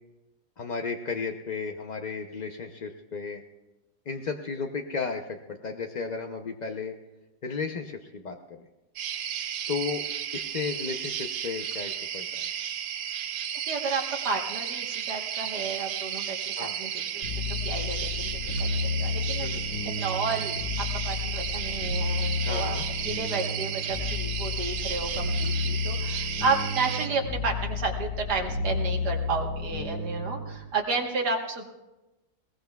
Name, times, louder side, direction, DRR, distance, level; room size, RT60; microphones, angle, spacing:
voice 1, 0.6-3.4 4.1-7.0 7.4-8.4 9.7-10.0 10.3-12.5 16.6-16.8 19.4-19.6 22.4-22.8, left 5 dB, 55° left, 3 dB, 0.4 m, -34 dB
sound 1, 9.0-27.1, right 9 dB, 60° right, 0.9 m, -33 dB
voice 2, 13.7-17.2 17.6-19.5 20.0-22.8 23.1-31.7, right 4 dB, 80° right, 2 dB, 1.9 m, -32 dB
sound 2, 17.2-30.6, left 4 dB, 75° left, 2.6 m, -31 dB
20.5 x 18.5 x 2.3 m, 1.0 s
omnidirectional pair, 1.7 m